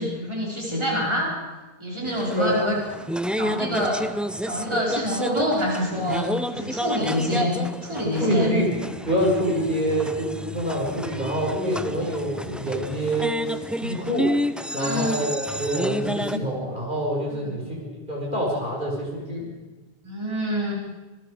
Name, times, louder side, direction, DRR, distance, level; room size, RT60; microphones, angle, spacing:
voice 1, 0.0-1.3 1.8-2.8 3.4-4.0 4.4-7.6 7.8-8.5 14.8-15.1 17.4-17.6 20.0-20.7, equal, 25° right, -4 dB, 5.3 m, -26 dB
sound 1, 2.0-16.4, equal, ahead, 0.6 m, -31 dB
voice 2, 8.2-8.8 9.1-14.4 14.7-19.5, equal, 50° right, -3 dB, 5.4 m, -26 dB
27.0 x 21.0 x 5.1 m, 1.2 s
omnidirectional pair, 1.0 m